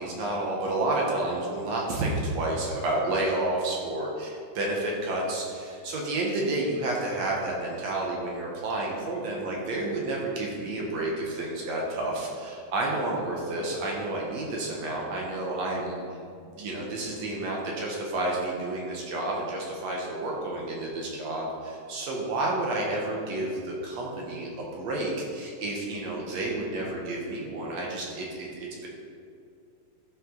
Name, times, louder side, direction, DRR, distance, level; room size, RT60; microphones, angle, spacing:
voice 1, 0.0-4.3 4.6-16.0 16.5-28.9, right 2 dB, 65° right, -2 dB, 2.3 m, -30 dB
12.5 x 5.7 x 3.9 m, 2.3 s
omnidirectional pair, 3.6 m